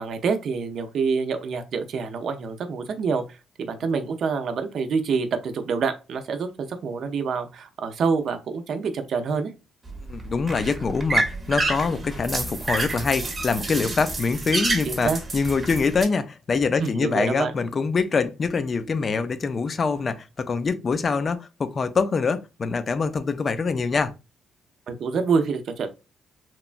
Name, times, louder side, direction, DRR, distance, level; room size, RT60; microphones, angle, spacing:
voice 1, 0.0-9.5 14.9-15.2 16.8-17.5 24.9-25.9, right 5 dB, 60° right, 0.5 m, -26 dB
sound 1, 9.8-16.0, right 2 dB, 30° right, 0.8 m, -29 dB
voice 2, 10.1-24.1, left 4 dB, 40° left, 0.3 m, -24 dB
2.9 x 2.2 x 2.4 m
cardioid pair, 90°, 0 cm